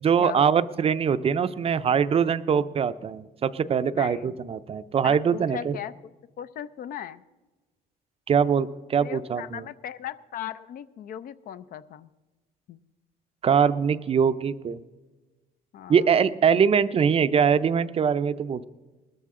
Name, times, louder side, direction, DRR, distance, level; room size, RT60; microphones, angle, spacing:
voice 1, 0.0-5.8 8.3-9.6 13.4-14.8 15.9-18.6, right 7 dB, 35° right, 13 dB, 0.5 m, -23 dB
voice 2, 3.9-4.4 5.0-6.1 6.4-7.2 9.0-12.1 12.7-12.8 15.7-16.2, left 9 dB, 55° left, 14 dB, 0.5 m, -38 dB
19.5 x 13.5 x 3.7 m, 1.2 s
cardioid pair, 110°, 17 cm